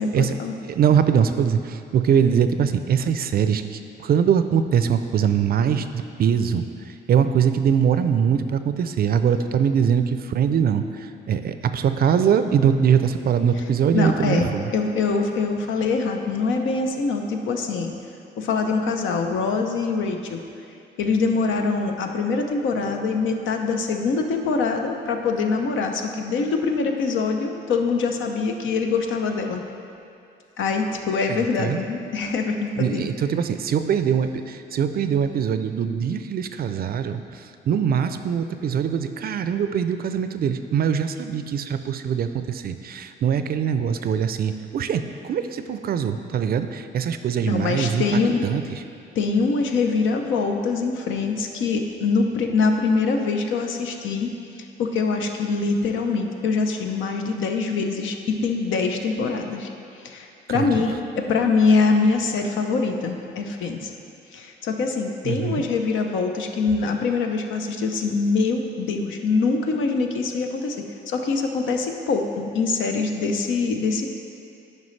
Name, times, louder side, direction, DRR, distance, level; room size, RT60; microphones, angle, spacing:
voice 1, 0.0-0.5 13.6-13.7 13.9-17.9 18.4-20.4 21.0-29.6 30.6-33.0 47.4-48.4 49.2-59.7 59.9-63.9 64.3-74.2, left 4 dB, 75° left, 4 dB, 0.7 m, -24 dB
voice 2, 0.7-6.6 7.1-14.7 31.3-31.8 32.8-48.8 60.5-60.7 65.2-65.6, right 7 dB, 50° right, 10 dB, 0.4 m, -22 dB
9.6 x 5.3 x 3.2 m, 2.6 s
cardioid pair, 90°, 20 cm